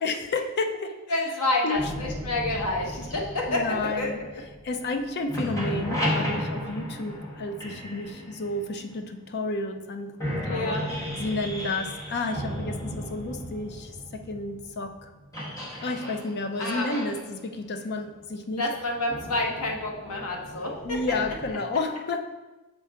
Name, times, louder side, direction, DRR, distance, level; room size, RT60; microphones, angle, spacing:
voice 1, 0.0-1.0 1.6-1.9 3.5-4.2 4.6-10.2 10.5-10.8 11.2-15.1 15.8-18.7 20.8-22.3, left 3 dB, 50° left, 7 dB, 0.5 m, -31 dB
voice 2, 1.1-4.1 10.5-10.9 16.6-16.9 18.6-21.1, left 2 dB, 80° left, 0 dB, 1.2 m, -28 dB
sound 1, 1.7-4.9 5.2-9.1 9.7-9.8 10.2-21.5, equal, 15° left, 1.1 m, -35 dB
6.6 x 4.5 x 3.6 m, 1.1 s
head